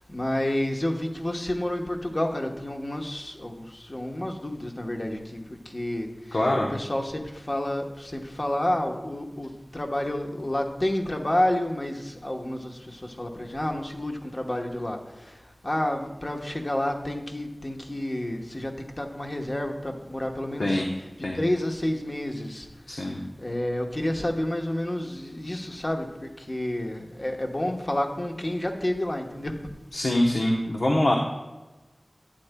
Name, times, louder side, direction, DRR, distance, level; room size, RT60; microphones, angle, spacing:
voice 1, 0.0-5.4 5.6-6.4 6.7-20.8 21.3-29.5, left 1 dB, 40° left, 3 dB, 1.0 m, -30 dB
voice 2, 6.3-6.7 20.6-20.9 21.2-21.4 22.9-23.2 29.9-31.1, left 1 dB, 85° left, -1 dB, 0.8 m, -24 dB
11.5 x 8.9 x 2.2 m, 1.1 s
wide cardioid pair, 55°, 0 cm